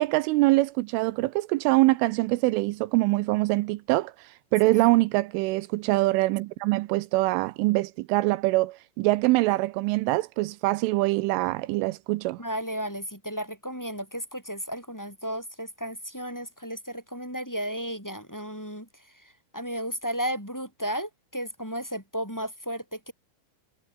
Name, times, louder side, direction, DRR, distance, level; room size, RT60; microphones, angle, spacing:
voice 1, 0.0-4.1 4.5-12.4, right 20 dB, 85° right, 3.2 m, -24 dB
voice 2, 12.4-18.9 19.2-23.1, equal, 5° left, 7.1 m, -34 dB
omnidirectional pair, 5.6 m